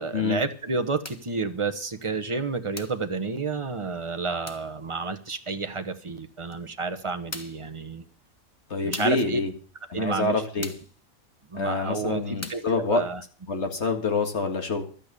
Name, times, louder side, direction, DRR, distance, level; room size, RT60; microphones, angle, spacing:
voice 1, 0.0-8.0 8.8-9.4 9.9-10.4 11.5-13.2, right 4 dB, 25° right, 8 dB, 1.1 m, -30 dB
sound 1, 1.0-1.3 2.8-3.1 4.5-4.7 6.5-6.6 7.3-7.7 8.9-9.3 10.6-11.0 12.4-12.7, left 1 dB, 15° left, 0.9 m, -39 dB
voice 2, 8.7-9.5 9.9-10.7 11.5-13.0 13.5-14.8, left 3 dB, 50° left, 5 dB, 2.1 m, -26 dB
12.5 x 9.1 x 6.8 m, 0.42 s
omnidirectional pair, 1.5 m